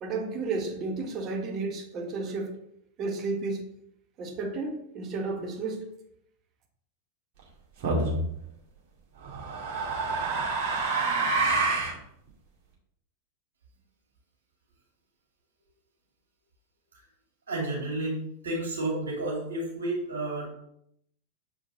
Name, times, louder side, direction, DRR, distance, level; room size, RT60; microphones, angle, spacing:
voice 1, 0.0-2.5 3.0-3.6 4.2-5.9, right 3 dB, 30° right, 3 dB, 1.3 m, -32 dB
sound 1, 7.8-8.2 9.2-12.0, right 3 dB, 50° right, 2.1 m, -27 dB
voice 2, 17.5-20.5, right 2 dB, 70° right, -2 dB, 2.9 m, -31 dB
7.4 x 4.8 x 3.9 m, 0.73 s
figure-of-eight pair, 90°, 0 cm